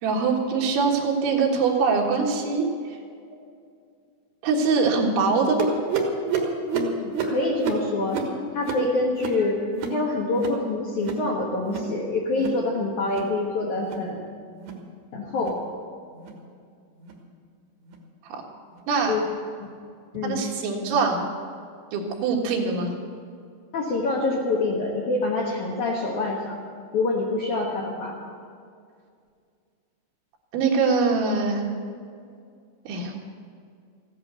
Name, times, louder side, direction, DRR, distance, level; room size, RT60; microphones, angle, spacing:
voice 1, 0.0-2.7 4.4-5.8 18.3-18.4 18.9-19.2 20.2-21.3 21.9-23.0 30.5-31.6 32.9-33.2, right 4 dB, 85° right, 0 dB, 4.2 m, -23 dB
sound 1, 5.6-10.6 10.9-11.3 11.6-12.0 12.3-12.6 13.0-13.4 13.8-14.1 14.5-14.8 15.3-15.6 16.2-16.4 17.0-17.2 17.9-18.0 18.8-18.9, right 5 dB, 60° right, 2.2 m, -30 dB
voice 2, 6.7-8.2 8.5-9.6 9.9-14.3 15.1-15.6 19.1-19.2 20.1-20.5 23.7-26.6 26.9-28.2, left 2 dB, 65° left, -2 dB, 2.0 m, -26 dB
15.0 x 11.0 x 6.8 m, 2.2 s
omnidirectional pair, 5.2 m